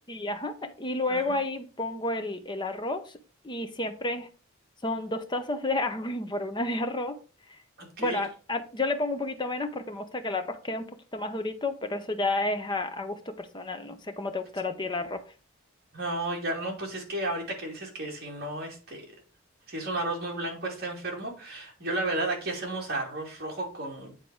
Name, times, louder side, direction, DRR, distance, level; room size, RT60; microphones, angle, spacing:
voice 1, 0.1-3.1 3.4-4.3 4.8-7.2 8.0-10.8 11.1-15.2, left 2 dB, 20° left, 7 dB, 0.8 m, -31 dB
voice 2, 7.8-8.2 15.9-19.2 19.7-24.1, right 2 dB, 45° right, -1 dB, 2.7 m, -33 dB
8.9 x 4.1 x 4.8 m, 0.36 s
head